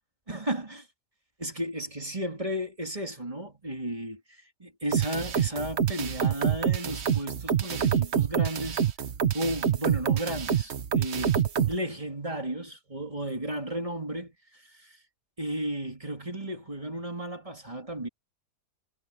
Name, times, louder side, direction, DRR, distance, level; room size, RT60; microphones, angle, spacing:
voice 1, 0.3-0.9 1.4-4.2 4.6-8.8 9.3-11.4 11.7-15.0 15.4-18.1, right 1 dB, 20° right, 3.3 m, -34 dB
sound 1, 4.9-11.8, right 8 dB, 50° right, 1.1 m, -26 dB
omnidirectional pair, 1.6 m